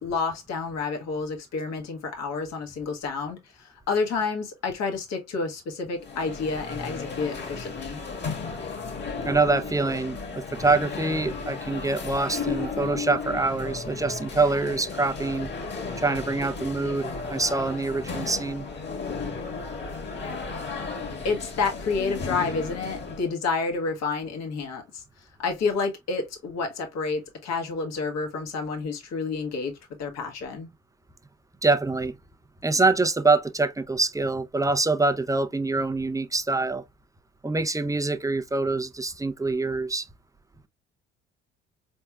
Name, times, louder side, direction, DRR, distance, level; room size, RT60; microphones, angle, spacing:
voice 1, 0.0-8.0 21.2-25.0 25.4-30.7, left 4 dB, 60° left, 1.6 m, -29 dB
sound 1, 6.0-23.3, left 4 dB, 35° left, 1.9 m, -34 dB
voice 2, 9.2-15.5 16.0-18.7 31.6-32.2 32.6-36.8 37.4-40.1, right 3 dB, 10° right, 0.6 m, -25 dB
4.4 x 3.5 x 2.3 m
hypercardioid pair, 55°, 30 cm